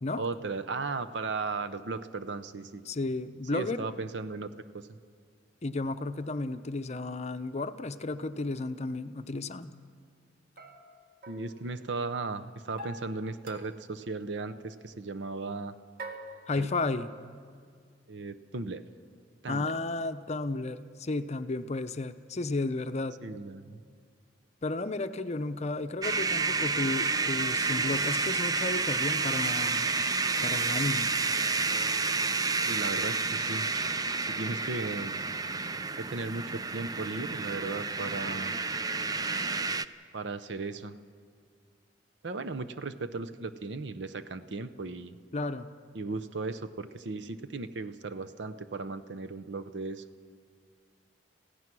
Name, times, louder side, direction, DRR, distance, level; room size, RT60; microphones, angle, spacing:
voice 1, 0.2-2.8 3.5-5.0 11.3-15.7 16.6-16.7 18.1-18.8 19.4-19.7 23.2-23.8 32.6-33.7 34.4-35.2 36.0-38.6 40.1-41.0 42.2-45.1 45.9-50.0, right 3 dB, 75° right, 12 dB, 0.7 m, -36 dB
voice 2, 2.9-3.9 5.6-9.7 16.5-17.1 19.5-23.2 24.6-29.9 30.4-31.1 45.3-45.7, left 2 dB, 40° left, 10 dB, 0.7 m, -33 dB
sound 1, 10.6-12.2 12.8-14.0 14.4-14.7 16.0-17.0, right 1 dB, 55° right, 1.9 m, -46 dB
sound 2, 26.0-39.8, right 4 dB, 20° right, 0.4 m, -30 dB
27.0 x 16.0 x 6.1 m, 2.1 s
head